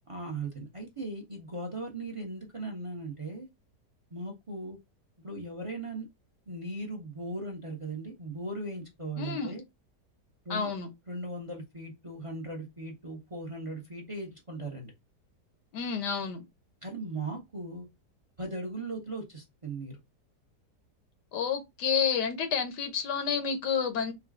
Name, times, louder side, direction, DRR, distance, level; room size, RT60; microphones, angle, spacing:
voice 1, 0.1-3.5 4.1-4.8 5.2-6.1 6.5-9.6 10.4-10.7 11.1-14.9 16.8-17.9 18.4-20.0, right 2 dB, 25° right, 0.8 m, -38 dB
voice 2, 9.2-9.6 10.5-10.9 15.7-16.4 21.3-24.1, left 6 dB, 85° left, 1.5 m, -30 dB
3.9 x 2.3 x 3.5 m
omnidirectional pair, 1.8 m